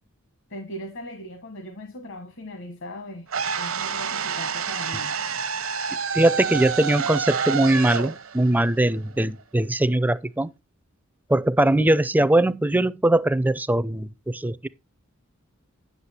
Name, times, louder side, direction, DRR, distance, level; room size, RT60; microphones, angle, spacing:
voice 1, 0.5-3.3 3.6-5.2, left 1 dB, 65° left, 1.3 m, -38 dB
sound 1, 3.3-9.4, right 6 dB, 75° right, 0.8 m, -28 dB
voice 2, 6.1-10.5 11.3-14.7, right 1 dB, 10° right, 0.4 m, -21 dB
9.7 x 6.4 x 4.2 m
head